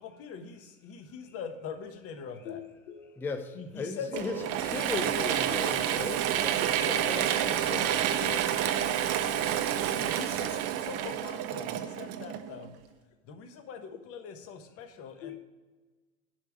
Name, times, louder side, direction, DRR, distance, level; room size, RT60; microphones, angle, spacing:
voice 1, 0.0-2.6 3.5-4.5 4.8-5.3 6.8-8.4 9.8-12.8 13.3-15.4, left 6 dB, 35° left, 1.2 m, -43 dB
voice 2, 2.5-3.1 8.2-9.0 9.6-9.9 15.2-15.4, left 10 dB, 75° left, 1.1 m, -44 dB
voice 3, 3.2-8.0, left 3 dB, 5° left, 0.4 m, -37 dB
Mechanisms / Drill, 4.1-12.7, right 10 dB, 40° right, 0.6 m, -29 dB
10.5 x 3.5 x 7.1 m
hypercardioid pair, 105°, 39 cm